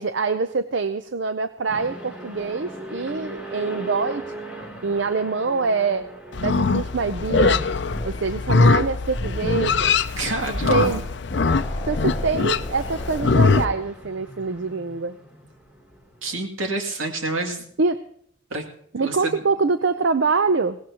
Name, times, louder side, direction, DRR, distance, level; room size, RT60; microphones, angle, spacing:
voice 1, 0.0-4.3 4.8-6.1 6.4-7.6 8.0-9.9 10.5-11.0 11.8-15.2 17.8-18.0 18.9-20.8, right 4 dB, 65° right, 11 dB, 0.6 m, -24 dB
sound 1, 1.7-16.5, right 1 dB, 5° right, 2.9 m, -41 dB
Livestock farm animals working animals, 6.3-13.6, left 4 dB, 60° left, 0.5 m, -22 dB
sound 2, 7.4-7.6 7.9-8.1 9.1-9.9 10.5-11.0 11.3-13.8, equal, 15° left, 4.1 m, -31 dB
voice 2, 10.2-10.9 11.5-11.6 16.2-17.7 18.5-18.6 19.0-19.4, right 2 dB, 80° right, 3 dB, 2.5 m, -28 dB
21.0 x 17.5 x 2.9 m, 0.63 s
head